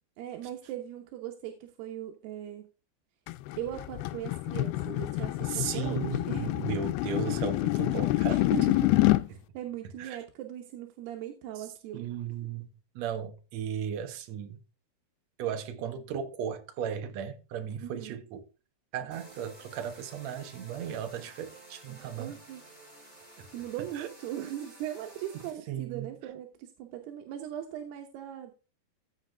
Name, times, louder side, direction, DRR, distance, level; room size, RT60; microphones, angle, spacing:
voice 1, 0.2-2.6 3.6-6.7 8.5-8.9 9.3-12.1 17.8-18.2 22.2-22.6 23.5-28.5, right 11 dB, 85° right, 3.1 m, -39 dB
sound 1, 3.3-9.3, left 18 dB, 85° left, 2.5 m, -27 dB
voice 2, 5.4-8.7 10.0-10.2 11.6-11.7 11.9-14.6 15.4-18.5 18.9-22.4 23.4-23.5 23.9-24.1 25.3-26.1, right 8 dB, 65° right, 1.8 m, -36 dB
sound 2, 19.1-25.5, right 2 dB, 10° right, 4.2 m, -52 dB
14.5 x 5.8 x 3.4 m
omnidirectional pair, 4.5 m